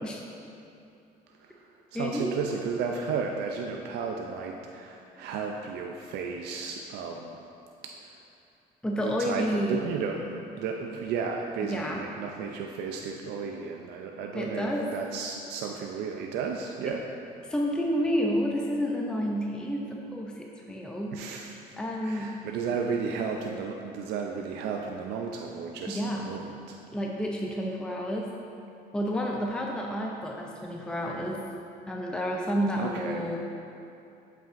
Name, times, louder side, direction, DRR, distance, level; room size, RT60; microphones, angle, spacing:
voice 1, 1.3-7.4 8.0-8.2 9.0-17.0 21.1-21.8 22.0-26.8 32.7-33.3, right 5 dB, 80° right, 1 dB, 0.4 m, -34 dB
voice 2, 1.9-2.4 8.8-9.9 11.6-12.0 14.3-14.9 16.9-17.0 17.5-21.2 21.8-22.4 25.9-26.3 26.9-28.3 28.9-31.4 31.9-33.4, equal, 5° left, -1 dB, 0.5 m, -30 dB
7.4 x 5.5 x 2.5 m, 2.7 s
cardioid pair, 110°, 17 cm